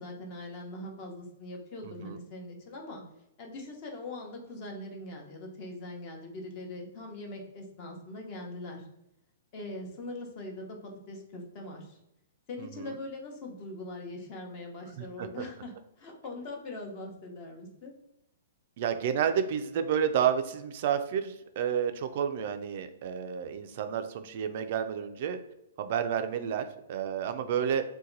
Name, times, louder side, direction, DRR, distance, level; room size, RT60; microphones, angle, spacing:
voice 1, 0.0-3.0 3.4-8.8 9.5-12.0 12.5-17.9, left 2 dB, 35° left, 2 dB, 0.8 m, -42 dB
voice 2, 1.8-2.2 12.6-12.9 15.0-15.4 18.8-25.4 25.8-27.8, right 8 dB, 50° right, 8 dB, 0.3 m, -30 dB
2.8 x 2.2 x 3.8 m, 0.82 s
hypercardioid pair, 155°, 0 cm